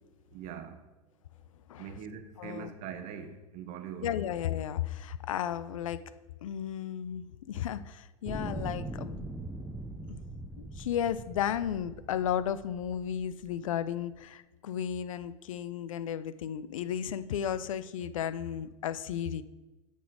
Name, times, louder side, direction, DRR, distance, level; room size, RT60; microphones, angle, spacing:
voice 1, 0.3-0.8 1.8-4.1, right 7 dB, 50° right, 8 dB, 1.0 m, -42 dB
voice 2, 2.4-2.7 4.0-6.0 6.4-9.2 10.1-10.2 10.7-19.4, left 9 dB, 80° left, 15 dB, 0.5 m, -34 dB
sound 1, 8.3-13.5 14.2-14.3, right 2 dB, 5° right, 0.6 m, -41 dB
9.0 x 4.3 x 4.8 m, 1.1 s
hypercardioid pair, 100°, 17 cm